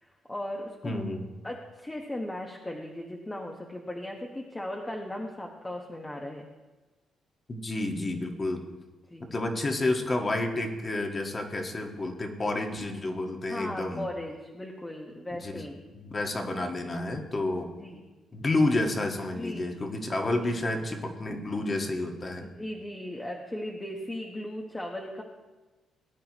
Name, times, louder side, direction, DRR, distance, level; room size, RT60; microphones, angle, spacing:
voice 1, 0.0-1.0 1.4-6.5 9.1-9.3 13.5-15.8 17.8-18.0 19.3-19.7 20.4-20.6 22.4-25.2, left 1 dB, 15° left, 0 dB, 1.3 m, -37 dB
voice 2, 0.8-1.3 7.5-8.6 9.2-14.0 15.3-15.5 15.9-17.7 18.3-22.5, left 2 dB, 30° left, 3 dB, 1.7 m, -30 dB
18.5 x 9.1 x 3.0 m, 1.2 s
cardioid pair, 90°, 0 cm